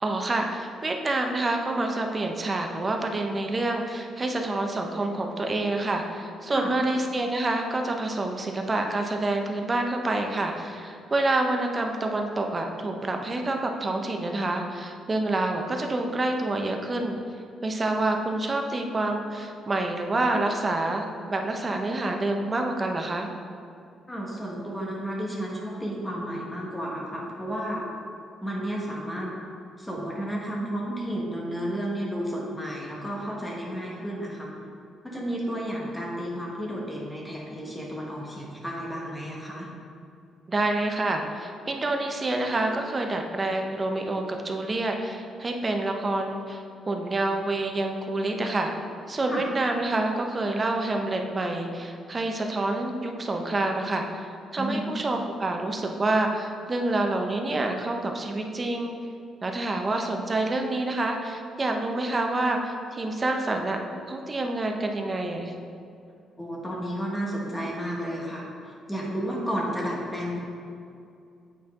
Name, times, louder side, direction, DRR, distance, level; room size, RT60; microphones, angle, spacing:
voice 1, 0.0-17.2 17.6-23.3 40.5-48.7 49.1-58.9 59.4-63.8 64.1-65.5, right 2 dB, 30° right, 3 dB, 0.8 m, -27 dB
voice 2, 24.1-27.9 28.4-29.3 29.8-34.5 35.0-39.7 49.3-49.5 54.6-54.9 66.4-70.4, equal, 10° left, -3 dB, 1.5 m, -32 dB
8.2 x 4.5 x 3.7 m, 2.5 s
cardioid pair, 90°, 0 cm